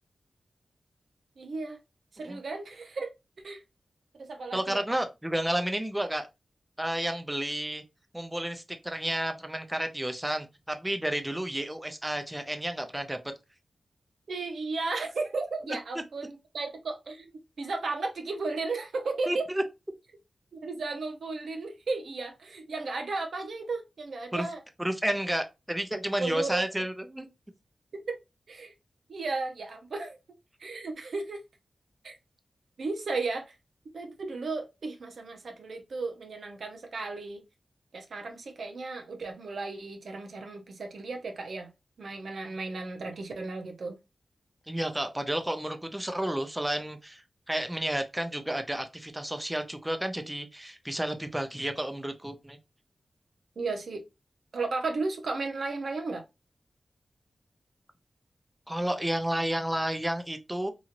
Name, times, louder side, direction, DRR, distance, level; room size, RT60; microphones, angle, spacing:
voice 1, 1.4-1.8 2.1-3.1 3.4-3.6 4.2-5.0 14.3-17.3 17.6-19.4 20.5-24.6 26.2-26.6 28.1-28.2 28.5-28.7 29.1-30.2 30.6-31.4 32.0-32.1 32.8-33.5 33.9-37.4 37.9-41.7 42.0-44.0 53.6-54.0 54.5-56.2, right 3 dB, 80° right, 0.6 m, -34 dB
voice 2, 4.5-6.3 6.8-7.8 8.1-13.2 19.3-19.6 24.3-24.5 24.8-27.3 44.7-47.2 47.5-52.6 58.7-60.7, right 1 dB, 15° right, 0.6 m, -31 dB
3.0 x 2.7 x 2.5 m
cardioid pair, 50°, 0 cm